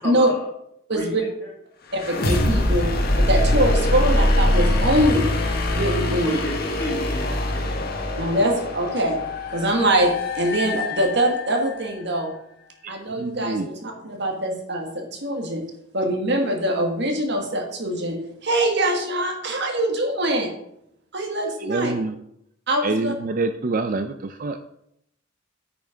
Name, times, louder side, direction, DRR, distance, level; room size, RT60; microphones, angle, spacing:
voice 1, 0.0-0.5 0.9-1.3 6.2-7.9, left 1 dB, 10° left, -5 dB, 2.2 m, -32 dB
voice 2, 0.9-1.2 1.9-2.9 3.2-5.3 5.7-6.4 8.2-9.2 9.5-12.3 12.9-15.6 15.9-18.2 18.4-20.5 21.1-21.9 22.7-23.1, right 1 dB, 60° right, 2 dB, 1.7 m, -23 dB
sound 1, 1.9-11.7, left 1 dB, 50° left, 1.5 m, -23 dB
voice 3, 13.2-13.7 21.6-22.2 22.8-24.7, right 3 dB, 45° right, 8 dB, 0.5 m, -26 dB
9.5 x 5.9 x 5.0 m, 0.75 s
head